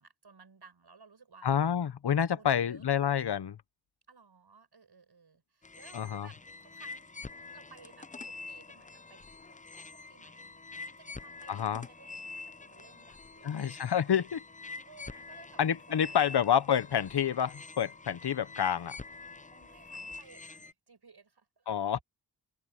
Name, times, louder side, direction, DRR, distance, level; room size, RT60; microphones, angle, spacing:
voice 1, 0.0-1.5 2.4-2.9 4.1-6.4 6.6-7.1 7.5-10.6 10.9-14.2 14.8-16.4 19.5-21.7, right 5 dB, 70° right, 7.9 m, -58 dB
voice 2, 1.4-3.6 5.9-6.3 11.5-11.8 13.4-14.4 15.6-18.9 21.7-22.0, left 8 dB, 75° left, 1.0 m, -28 dB
sound 1, 5.6-20.7, left 3 dB, 20° left, 0.6 m, -46 dB
cardioid pair, 45°, 40 cm